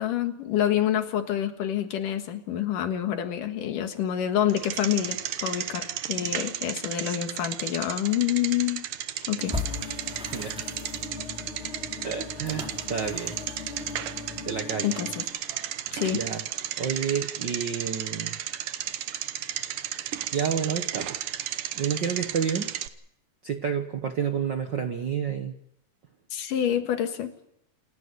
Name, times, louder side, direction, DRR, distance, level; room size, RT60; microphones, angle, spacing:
voice 1, 0.0-8.9 9.3-9.5 14.8-15.2 15.9-16.2 26.3-27.3, left 11 dB, 85° left, 7 dB, 3.2 m, -27 dB
Bicycle, 4.5-22.9, right 12 dB, 90° right, 2.7 m, -34 dB
sound 1, 9.4-15.2, left 3 dB, 45° left, 2.5 m, -40 dB
sound 2, 9.5-14.6, left 3 dB, ahead, 4.5 m, -39 dB
voice 2, 12.0-13.4 14.5-14.9 15.5-15.7 16.1-16.4 16.8-18.4 19.9-20.0 20.3-21.2 21.7-22.7 23.4-25.5, right 7 dB, 65° right, 6 dB, 1.1 m, -30 dB
28.5 x 14.0 x 8.1 m, 0.76 s
omnidirectional pair, 3.7 m